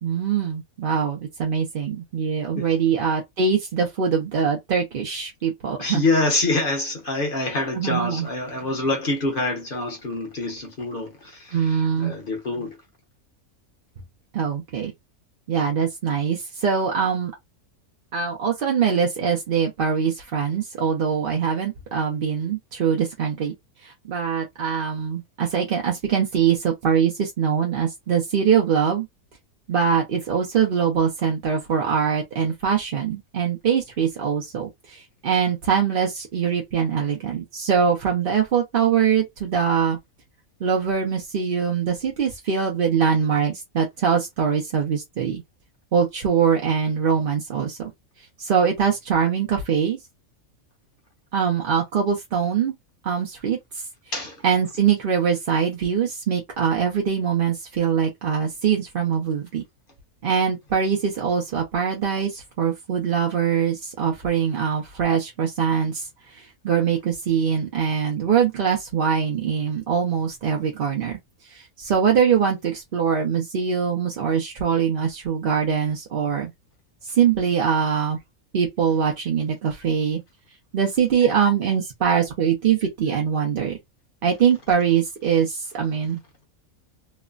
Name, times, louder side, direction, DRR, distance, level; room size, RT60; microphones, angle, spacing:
voice 1, 0.0-6.0 7.7-8.3 11.5-12.1 14.3-14.9 15.5-17.3 18.1-23.5 23.8-29.1 29.7-40.0 40.6-45.4 45.9-47.9 48.4-50.0 51.3-52.7 53.0-53.8 54.4-59.6 60.2-71.2 71.5-76.5 77.1-78.2 78.5-80.2 80.7-83.8 84.2-86.2, right 7 dB, 55° right, 0.6 m, -23 dB
voice 2, 5.8-12.8 54.1-54.4, left 2 dB, 45° left, 0.9 m, -26 dB
3.1 x 2.1 x 2.3 m
omnidirectional pair, 1.5 m